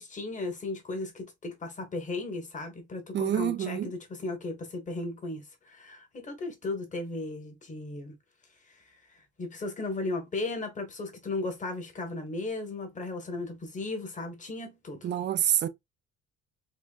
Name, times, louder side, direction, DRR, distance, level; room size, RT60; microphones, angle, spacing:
voice 1, 0.0-8.1 8.6-15.1, left 2 dB, 25° left, 1.4 m, -36 dB
voice 2, 3.1-3.9 15.0-15.7, right 10 dB, 40° right, 0.5 m, -27 dB
4.5 x 2.9 x 2.4 m
cardioid pair, 140°, 29 cm